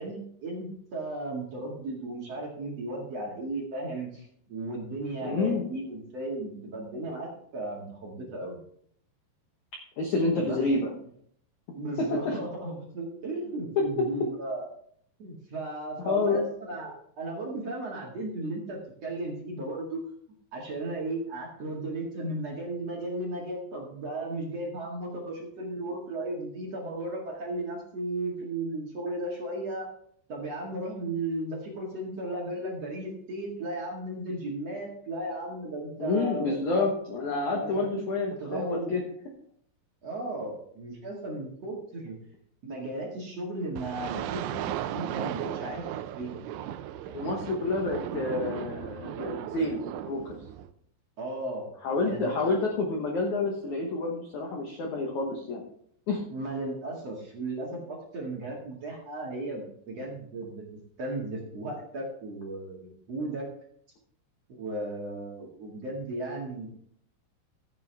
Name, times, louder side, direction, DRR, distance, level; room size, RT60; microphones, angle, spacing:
voice 1, 0.0-8.6 10.4-10.6 11.7-14.7 15.2-20.0 20.5-29.9 30.3-36.9 37.4-38.0 38.4-39.0 40.0-42.2 42.6-44.7 44.9-46.4 47.0-47.5 51.2-51.7 52.0-52.6 56.3-60.6 61.0-63.5 64.5-66.7, right 2 dB, 45° right, -3 dB, 2.3 m, -35 dB
voice 2, 5.2-5.6 10.0-10.9 12.0-12.4 16.0-16.4 36.0-39.0 47.1-50.4 51.8-55.6 56.1-56.2, left 3 dB, 90° left, 0 dB, 1.6 m, -29 dB
sound 1, 43.8-50.7, right 11 dB, 85° right, 3.0 m, -36 dB
15.0 x 7.6 x 3.5 m, 0.65 s
omnidirectional pair, 5.4 m